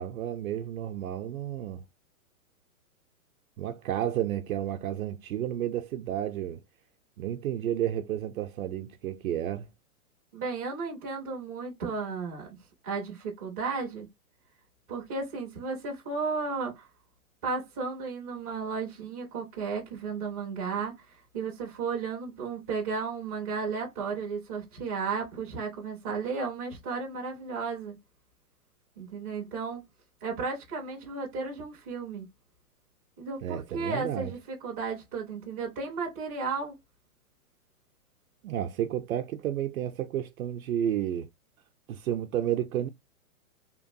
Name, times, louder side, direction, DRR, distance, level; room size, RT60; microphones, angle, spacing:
voice 1, 0.0-1.8 3.6-6.6 7.2-9.7 33.4-34.3 38.4-41.3 41.9-42.9, right 11 dB, 70° right, 0.6 m, -31 dB
voice 2, 10.3-12.5 12.8-14.1 14.9-16.9 17.4-28.0 29.0-29.8 30.2-32.3 33.2-36.7, right 4 dB, 10° right, 0.4 m, -34 dB
3.0 x 2.2 x 2.5 m
hypercardioid pair, 155°, 44 cm